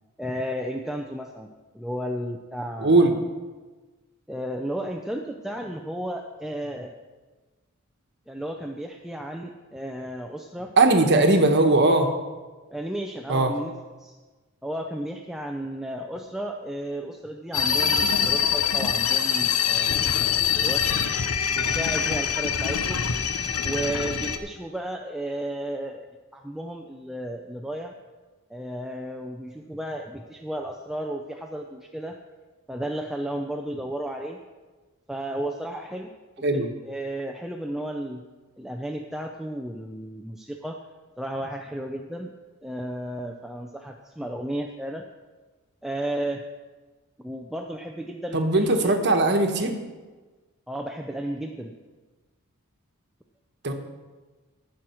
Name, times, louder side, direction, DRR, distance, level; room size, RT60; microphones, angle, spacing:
voice 1, 0.2-1.5 1.7-3.1 4.3-6.9 8.3-10.7 12.7-14.1 14.6-20.8 21.5-23.0 23.6-26.1 26.3-27.9 28.5-32.2 32.7-34.4 35.1-36.1 36.5-38.3 38.6-40.8 41.2-42.3 42.6-45.0 45.8-46.5 47.2-49.2 50.7-51.7, right 1 dB, ahead, 2 dB, 0.5 m, -33 dB
voice 2, 2.8-3.1 10.8-12.1 13.3-13.5 36.4-36.7 48.3-49.8 53.6-53.7, right 2 dB, 50° right, 5 dB, 1.2 m, -19 dB
sound 1, 17.5-24.4, left 7 dB, 75° left, 0.8 m, -24 dB
19.0 x 6.4 x 4.5 m, 1.3 s
head